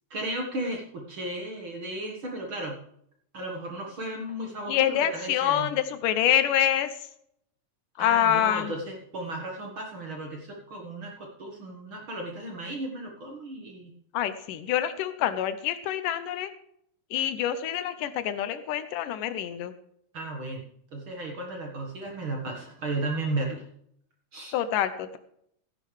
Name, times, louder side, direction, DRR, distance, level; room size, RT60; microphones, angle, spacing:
voice 1, 0.1-2.8 3.3-5.7 8.0-13.9 20.1-20.6 20.9-23.6 24.3-24.5, right 2 dB, 50° right, 1 dB, 1.8 m, -34 dB
voice 2, 4.7-6.9 8.0-8.7 14.1-16.5 17.1-19.7 24.5-25.2, left 11 dB, 80° left, 11 dB, 2.3 m, -26 dB
14.5 x 11.0 x 3.3 m, 0.70 s
omnidirectional pair, 3.9 m